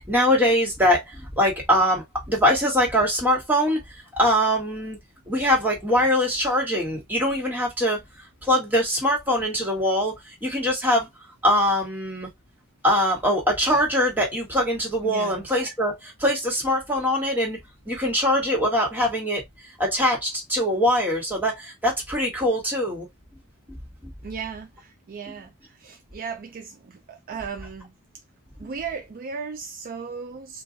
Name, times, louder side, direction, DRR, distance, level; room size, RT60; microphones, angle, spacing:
voice 1, 0.1-3.8 4.2-5.0 5.3-8.0 8.4-11.1 11.4-12.3 12.8-17.6 17.9-19.4 19.8-23.1, equal, 10° right, 1.5 m, -22 dB
voice 2, 15.0-15.5 24.2-25.5 25.8-27.9 28.6-30.6, right 5 dB, 40° right, 0.4 m, -36 dB
2.5 x 2.2 x 3.8 m
head